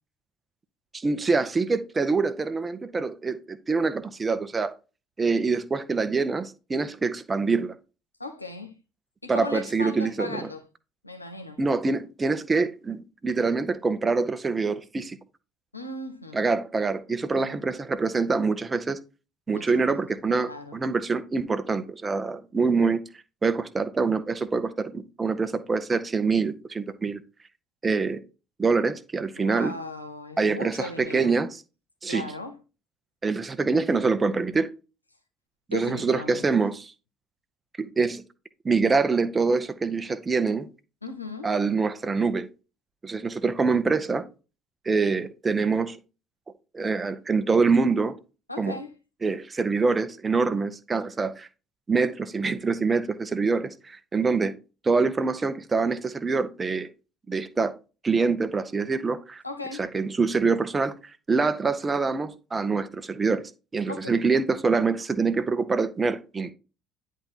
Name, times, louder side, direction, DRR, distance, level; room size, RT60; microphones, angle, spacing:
voice 1, 0.9-4.7 5.2-7.7 9.3-10.4 11.6-15.2 16.3-19.0 19.5-23.0 23.4-27.2 27.8-28.2 28.6-29.7 30.4-31.6 32.0-32.3 33.2-34.7 35.7-36.9 37.8-38.2 38.6-40.7 41.4-42.5 43.0-44.2 44.8-46.0 46.7-48.1 48.6-48.8 49.2-51.5 51.9-54.5 54.8-56.9 57.3-57.7 58.0-59.4 59.8-60.9 61.3-63.4 63.7-66.5, right 4 dB, 25° right, 0.9 m, -25 dB
voice 2, 8.2-8.8 9.2-10.6 11.0-11.6 15.7-16.4 17.3-17.6 19.5-20.0 20.4-20.8 29.4-31.3 32.1-32.6 35.7-36.4 41.0-41.5 48.5-48.9 59.4-59.9 63.9-64.2, left 2 dB, 90° left, 0.8 m, -37 dB
10.0 x 3.7 x 4.3 m
figure-of-eight pair, 55°, 0 cm